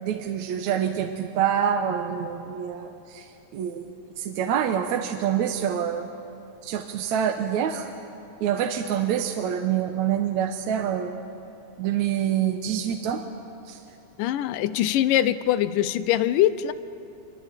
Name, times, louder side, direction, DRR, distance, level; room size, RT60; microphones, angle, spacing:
voice 1, 0.0-3.3 3.5-6.1 6.6-7.9 8.4-11.2 11.8-13.2 13.7-13.8, right 9 dB, 70° right, 4 dB, 2.2 m, -26 dB
voice 2, 14.2-16.7, left 12 dB, 85° left, 14 dB, 2.4 m, -23 dB
25.0 x 23.5 x 9.1 m, 2.7 s
omnidirectional pair, 3.7 m